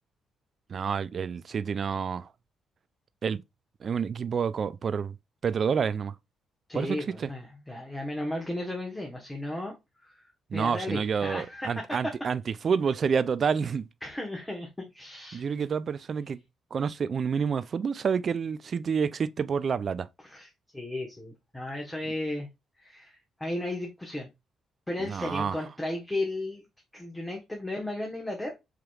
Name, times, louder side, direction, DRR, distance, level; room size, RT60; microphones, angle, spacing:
voice 1, 0.7-2.3 3.2-3.4 3.8-5.1 5.4-6.1 6.7-7.3 10.5-13.9 15.3-16.4 16.7-20.1 25.0-25.6, right 6 dB, 50° right, 0.3 m, -28 dB
voice 2, 6.7-10.2 10.5-12.2 14.0-15.5 20.2-22.5 22.8-24.3 24.9-26.7 26.9-28.6, left 1 dB, 10° left, 1.1 m, -35 dB
4.9 x 3.0 x 2.3 m
supercardioid pair, 70°, 0 cm